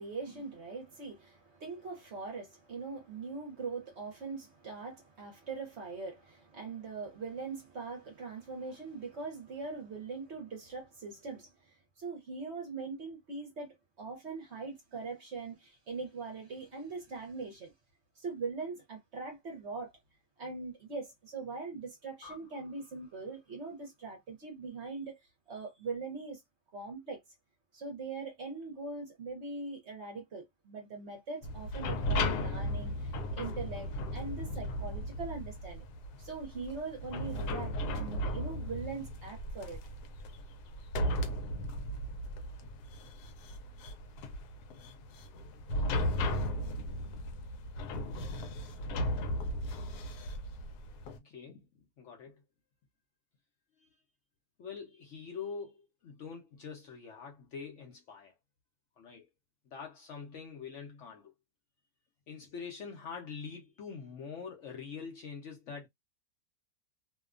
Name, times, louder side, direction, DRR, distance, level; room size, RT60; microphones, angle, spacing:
voice 1, 0.0-17.7 18.2-19.9 20.4-25.2 25.5-26.4 26.7-27.2 27.7-35.8 36.2-39.8 41.0-41.1, right 4 dB, 55° right, 0.9 m, -41 dB
sound 1, 22.2-25.0, left 5 dB, 35° left, 0.8 m, -58 dB
sound 2, 31.4-51.2, equal, 85° left, 1.1 m, -36 dB
voice 2, 51.0-52.4 53.8-53.9 54.6-58.3 59.0-59.3 59.7-61.3 62.3-65.9, left 6 dB, 60° left, 0.8 m, -45 dB
2.7 x 2.2 x 2.4 m
omnidirectional pair, 1.7 m